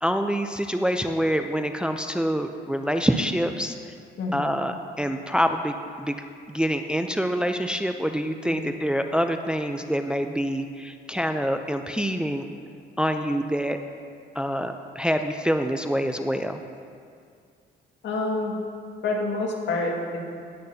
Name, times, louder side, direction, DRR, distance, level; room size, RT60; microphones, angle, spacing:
voice 1, 0.0-3.8 4.3-6.1 6.5-12.5 13.0-13.8 14.4-16.6, equal, 5° right, 6 dB, 0.5 m, -26 dB
voice 2, 4.2-4.5 8.4-8.7 18.0-18.6 19.0-20.2, left 2 dB, 65° left, -1 dB, 2.0 m, -28 dB
18.0 x 8.7 x 2.8 m, 2.2 s
cardioid pair, 90°, 20 cm